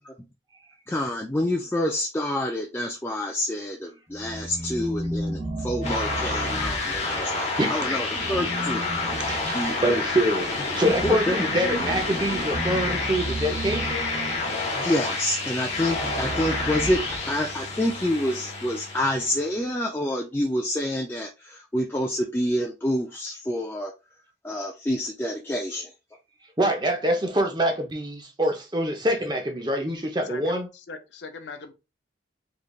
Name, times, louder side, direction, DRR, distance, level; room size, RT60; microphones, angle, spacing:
voice 1, 0.9-8.9 9.1-10.0 11.0-11.6 14.7-17.0 17.3-23.9 24.4-25.9, left 1 dB, 10° left, 0.3 m, -28 dB
sound 1, 4.1-7.4 8.1-14.7 15.7-17.6, right 1 dB, 50° right, 2.0 m, -34 dB
sound 2, 5.8-19.5, left 3 dB, 40° left, 1.0 m, -29 dB
voice 2, 7.6-8.0 9.2-14.1 26.6-30.7, equal, 25° right, 0.7 m, -25 dB
voice 3, 30.2-31.7, left 4 dB, 85° left, 0.6 m, -40 dB
3.7 x 3.2 x 2.3 m
head